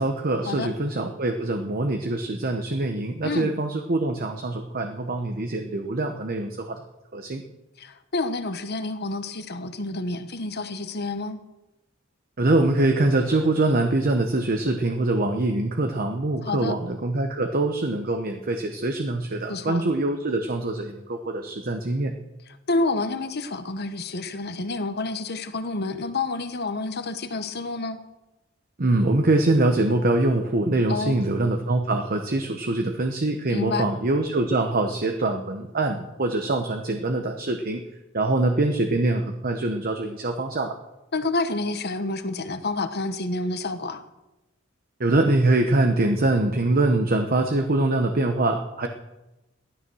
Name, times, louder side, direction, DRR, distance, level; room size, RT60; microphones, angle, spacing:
voice 1, 0.0-6.8 7.1-7.4 12.4-22.1 28.8-37.8 38.1-40.7 45.0-48.9, right 2 dB, 45° right, 5 dB, 1.0 m, -24 dB
voice 2, 3.2-3.6 7.8-11.4 16.4-16.7 19.5-19.8 22.7-28.0 30.9-31.2 33.5-33.9 41.1-44.0, left 3 dB, 55° left, 9 dB, 1.2 m, -29 dB
15.0 x 12.5 x 6.3 m, 0.99 s
head